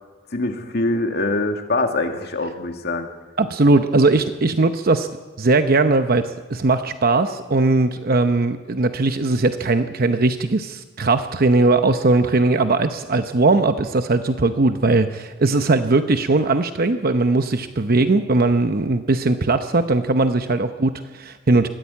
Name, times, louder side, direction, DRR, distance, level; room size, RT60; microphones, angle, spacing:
voice 1, 0.3-3.1, left 2 dB, 55° left, 4 dB, 2.1 m, -23 dB
voice 2, 3.4-5.1 5.4-21.7, right 3 dB, 50° right, 8 dB, 0.8 m, -19 dB
21.5 x 15.0 x 8.4 m, 1.3 s
head